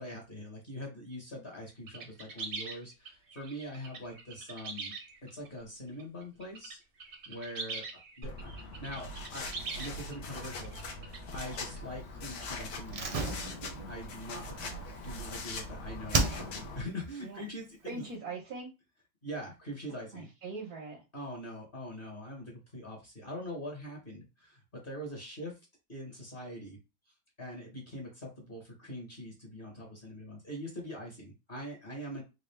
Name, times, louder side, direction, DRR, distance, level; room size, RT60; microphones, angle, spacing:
voice 1, 0.0-4.9 5.3-6.8 7.3-7.9 8.2-9.5 9.8-10.7 11.3-13.3 13.9-14.7 15.0-17.9 19.2-20.3 21.1-25.5 25.9-26.8 27.4-32.2, equal, 35° left, -1 dB, 1.3 m, -43 dB
sound 1, 1.9-5.5 6.0-6.7 7.0-11.6, right 4 dB, 50° right, 0.7 m, -43 dB
sound 2, 8.2-16.8, left 2 dB, 80° left, 1.4 m, -42 dB
Slam, 12.9-15.6 16.1-16.9 17.1-17.2, right 3 dB, 70° right, 0.3 m, -34 dB
voice 2, 14.3-14.9 17.2-17.4 17.8-18.7 20.1-21.0, right 3 dB, 90° right, -4 dB, 1.5 m, -42 dB
4.2 x 2.4 x 3.3 m, 0.27 s
omnidirectional pair, 1.6 m